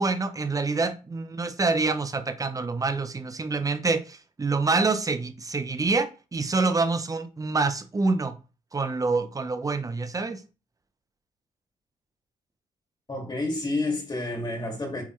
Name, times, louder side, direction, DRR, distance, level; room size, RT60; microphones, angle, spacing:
voice 1, 0.0-8.4 8.7-10.4, right 3 dB, 25° right, 0.8 m, -26 dB
voice 2, 13.1-15.0, left 2 dB, 30° left, 2.2 m, -29 dB
8.3 x 3.5 x 3.2 m
cardioid pair, 75°, 15 cm